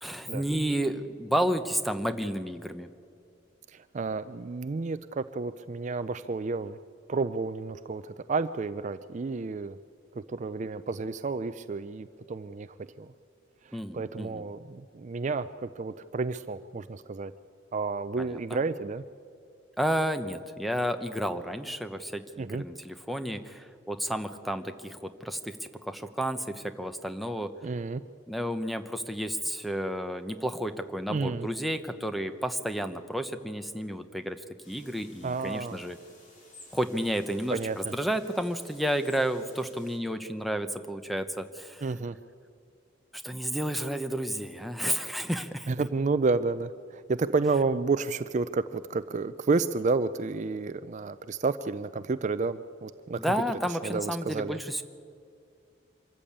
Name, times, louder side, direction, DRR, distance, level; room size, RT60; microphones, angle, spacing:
voice 1, 0.0-2.9 13.7-14.4 18.2-18.6 19.8-25.6 25.8-27.5 28.3-36.0 36.7-41.8 43.1-45.7 53.2-54.8, equal, ahead, 9 dB, 0.8 m, -31 dB
voice 2, 3.7-6.8 7.1-9.8 10.1-13.1 13.6-17.3 17.7-19.0 22.4-22.6 27.6-28.0 31.1-31.5 35.2-35.8 37.5-37.9 41.8-42.2 45.7-53.2 53.7-54.6, right 4 dB, 40° right, 13 dB, 0.4 m, -31 dB
sound 1, 34.6-40.0, left 2 dB, 40° left, 4.0 m, -55 dB
25.0 x 14.0 x 8.7 m, 2.4 s
head